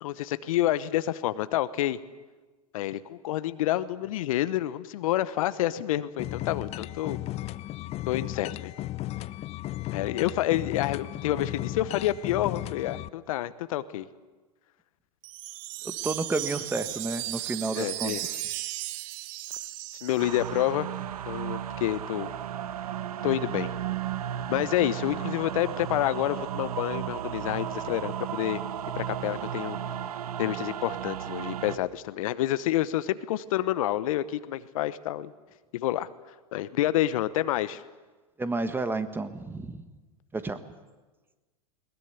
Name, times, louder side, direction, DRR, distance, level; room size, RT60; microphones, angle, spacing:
voice 1, 0.0-2.0 2.7-7.2 8.0-8.7 9.9-14.1 17.7-18.4 20.0-20.9 21.3-22.3 23.2-23.7 24.5-28.6 29.0-29.8 30.4-35.3 35.7-36.1 36.5-37.8, left 13 dB, 60° left, 15 dB, 0.9 m, -28 dB
sound 1, 6.2-13.1, left 15 dB, 35° left, 0.6 m, -35 dB
Wind chime, 15.2-20.6, right 17 dB, 45° right, 0.8 m, -36 dB
voice 2, 15.8-18.4 38.4-39.9 40.3-40.6, right 3 dB, 10° right, 11 dB, 1.5 m, -31 dB
sound 2, 20.2-31.8, right 10 dB, 75° right, 1.0 m, -34 dB
21.0 x 20.0 x 8.2 m, 1.3 s
hypercardioid pair, 100°, 19 cm